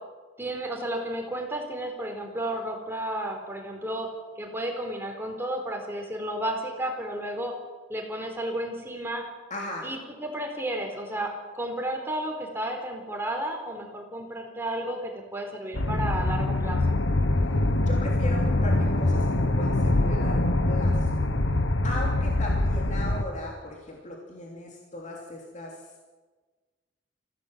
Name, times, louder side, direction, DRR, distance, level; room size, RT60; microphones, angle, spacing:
voice 1, 0.4-4.1 4.4-7.5 7.9-9.2 9.8-16.8, right 1 dB, 15° right, 1 dB, 4.2 m, -32 dB
voice 2, 9.5-9.9 17.8-21.1 21.8-25.8, left 1 dB, 40° left, -1 dB, 3.1 m, -37 dB
sound 1, 15.7-23.2, left 1 dB, 85° left, 1.5 m, -24 dB
25.5 x 16.5 x 7.5 m, 1.3 s
head